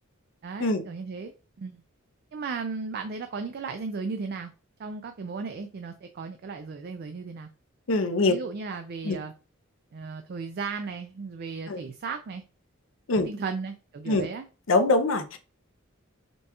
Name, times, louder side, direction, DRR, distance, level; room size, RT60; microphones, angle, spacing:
voice 1, 0.4-1.3 1.6-1.8 2.3-4.5 4.8-7.5 8.2-9.3 9.9-12.4 13.2-14.5, right 4 dB, 50° right, 0.4 m, -35 dB
voice 2, 7.9-8.3 9.0-9.2 11.7-11.8 13.1-13.3 14.1-14.3 14.7-15.4, left 2 dB, 70° left, 0.6 m, -23 dB
5.2 x 2.3 x 2.9 m
head